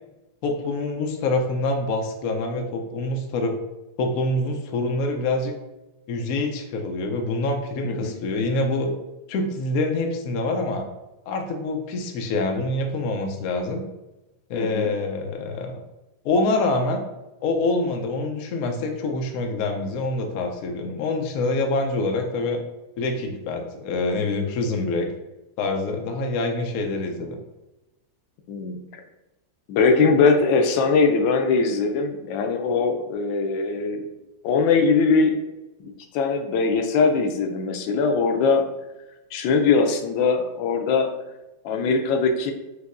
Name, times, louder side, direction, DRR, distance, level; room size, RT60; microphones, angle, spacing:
voice 1, 0.4-3.6 4.0-5.5 6.1-8.9 9.3-10.9 11.3-13.8 14.5-15.8 16.2-17.0 17.4-22.6 23.0-25.1 25.6-27.4, left 2 dB, 65° left, 3 dB, 0.9 m, -25 dB
voice 2, 14.5-14.9 28.5-29.0 29.7-34.0 34.4-35.4 35.8-38.6 39.3-41.1 41.6-42.5, left 4 dB, 90° left, 5 dB, 1.3 m, -21 dB
6.0 x 2.6 x 2.5 m, 0.99 s
omnidirectional pair, 2.0 m